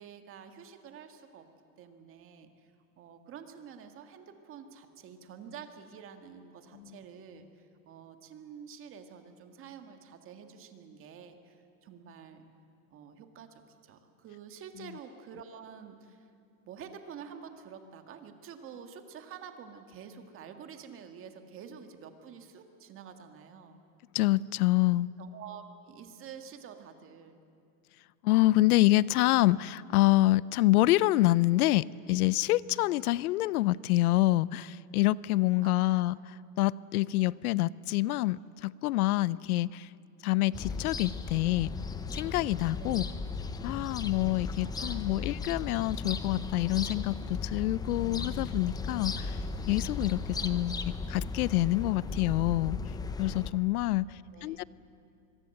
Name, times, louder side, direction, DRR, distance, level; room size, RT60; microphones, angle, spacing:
voice 1, 0.0-1.5 1.8-2.7 3.0-12.5 12.9-16.3 16.6-23.8 25.2-27.4 33.1-33.6 35.6-36.2 42.8-43.3 44.6-45.4 54.1-54.6, right 7 dB, 30° right, 6 dB, 1.9 m, -49 dB
voice 2, 24.1-25.1 28.2-36.2 36.6-39.9 40.2-41.7 42.1-43.0 43.6-49.4 49.7-50.7 51.1-52.8 53.2-54.1 54.4-54.6, left 17 dB, 80° left, 21 dB, 0.7 m, -26 dB
sound 1, 40.5-53.5, left 4 dB, 10° left, 0.7 m, -36 dB
25.0 x 23.0 x 7.9 m, 2.5 s
supercardioid pair, 150°, 43 cm